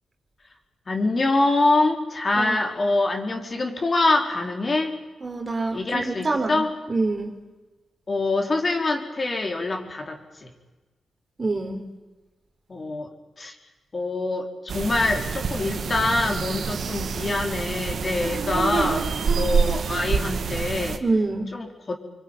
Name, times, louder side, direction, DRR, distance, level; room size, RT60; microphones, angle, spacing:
voice 1, 0.9-4.9 5.7-6.7 8.1-10.5 12.7-13.1 13.4-13.5 13.9-19.1 19.3-21.0 21.5-21.9, left 2 dB, 40° left, 3 dB, 4.6 m, -25 dB
voice 2, 5.2-5.8 6.1-6.6 6.9-7.3 11.4-11.8 21.0-21.5, right 3 dB, 35° right, 4 dB, 4.0 m, -25 dB
sound 1, 14.7-21.0, right 6 dB, 70° right, 2.2 m, -26 dB
25.0 x 24.0 x 9.3 m, 1.2 s
cardioid pair, 60°, 0 cm